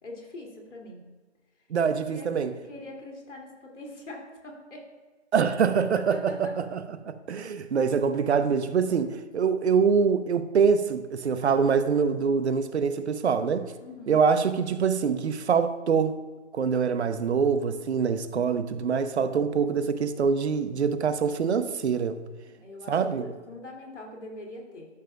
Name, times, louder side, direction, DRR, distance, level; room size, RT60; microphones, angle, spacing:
voice 1, 0.0-1.0 2.1-4.9 6.1-6.5 13.8-14.2 22.5-24.9, left 2 dB, 80° left, 2.6 m, -43 dB
voice 2, 1.7-2.5 5.3-13.7 14.1-16.2 16.5-22.2 22.9-23.3, right 6 dB, 65° right, 0.8 m, -25 dB
13.0 x 6.9 x 2.3 m
hypercardioid pair, 145°, 36 cm